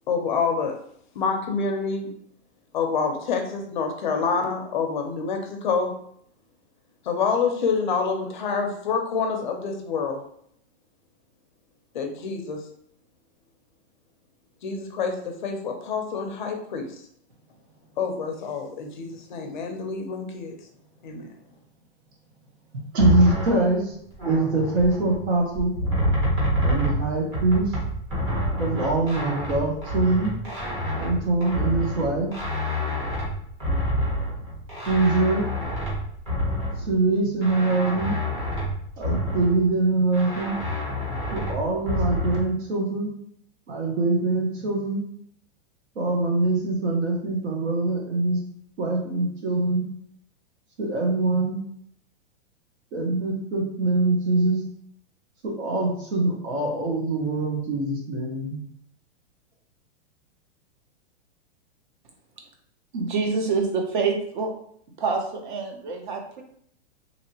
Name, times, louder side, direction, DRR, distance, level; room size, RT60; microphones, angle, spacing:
voice 1, 0.1-0.8 1.2-2.1 2.7-5.9 7.1-10.2 11.9-12.6 14.6-16.9 18.0-20.5 21.0-21.3, left 5 dB, 45° left, 3 dB, 0.4 m, -27 dB
voice 2, 22.7-23.9 24.3-25.7 26.6-27.7 28.6-30.3 30.9-32.3 34.9-35.5 36.8-38.2 39.0-40.5 41.3-43.1 43.7-45.1 45.9-48.4 48.8-49.9 50.8-51.6 52.9-54.6 55.4-58.6, right 3 dB, 75° right, 0 dB, 1.1 m, -23 dB
sound 1, 23.0-25.2 25.5-37.0 37.4-39.7 40.1-42.4, left 1 dB, 25° right, 1.0 m, -28 dB
voice 3, 62.9-64.5 65.0-66.4, right 4 dB, 45° right, 3 dB, 0.6 m, -26 dB
2.9 x 2.6 x 2.7 m, 0.66 s
supercardioid pair, 175°, 34 cm